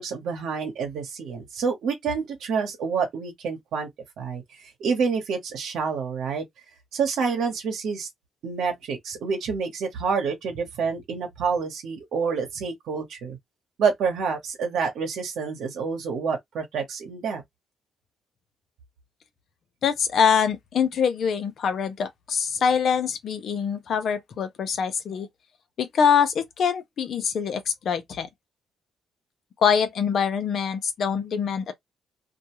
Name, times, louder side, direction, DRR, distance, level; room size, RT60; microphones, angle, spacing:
voice 1, 0.0-3.9 4.2-6.4 6.9-8.1 8.4-13.4 13.8-17.4, right 5 dB, 75° right, 1.0 m, -28 dB
voice 2, 19.8-25.3 25.8-28.3 29.6-31.7, left 7 dB, 60° left, 0.7 m, -24 dB
2.5 x 2.3 x 2.9 m
cardioid pair, 90°, 0 cm